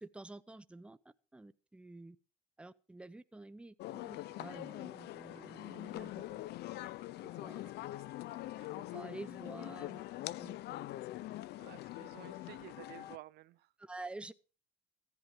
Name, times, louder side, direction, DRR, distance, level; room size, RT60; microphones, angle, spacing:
voice 1, 0.0-1.0 1.3-2.2 2.6-6.4 7.4-7.6 8.8-10.0 10.4-10.6 13.8-14.3, right 2 dB, 5° right, 0.8 m, -49 dB
sound 1, 3.8-13.2, left 16 dB, 75° left, 0.6 m, -44 dB
sound 2, 3.9-9.3, right 7 dB, 40° right, 2.7 m, -69 dB
voice 2, 11.6-13.7, right 17 dB, 75° right, 0.6 m, -53 dB
15.5 x 11.0 x 4.9 m
cardioid pair, 110°, 17 cm